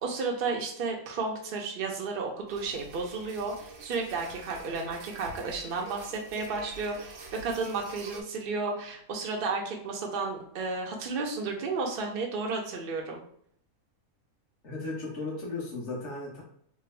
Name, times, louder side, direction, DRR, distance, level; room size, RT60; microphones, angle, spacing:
voice 1, 0.0-13.2, right 4 dB, 55° right, 0 dB, 0.6 m, -33 dB
sound 1, 2.5-8.2, right 3 dB, 85° right, 1.1 m, -46 dB
voice 2, 14.6-16.4, left 3 dB, 55° left, -4 dB, 1.3 m, -35 dB
3.3 x 2.0 x 3.2 m, 0.64 s
omnidirectional pair, 1.5 m